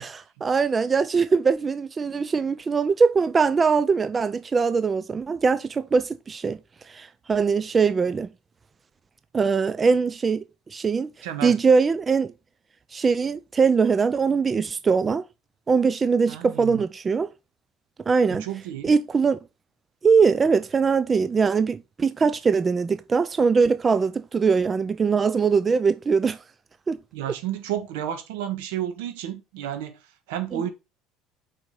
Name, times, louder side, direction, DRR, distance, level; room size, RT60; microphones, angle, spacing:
voice 1, 0.0-6.6 6.9-8.3 9.3-10.4 10.7-11.1 11.4-12.3 12.9-15.2 15.7-17.3 18.1-18.4 18.8-19.4 20.0-26.4 26.9-27.0, right 5 dB, 25° right, 0.5 m, -22 dB
voice 2, 11.2-11.6 16.3-16.8 18.3-18.9 27.1-30.0 30.3-30.7, right 11 dB, 85° right, 1.5 m, -31 dB
5.2 x 5.1 x 5.5 m
supercardioid pair, 110°, 0 cm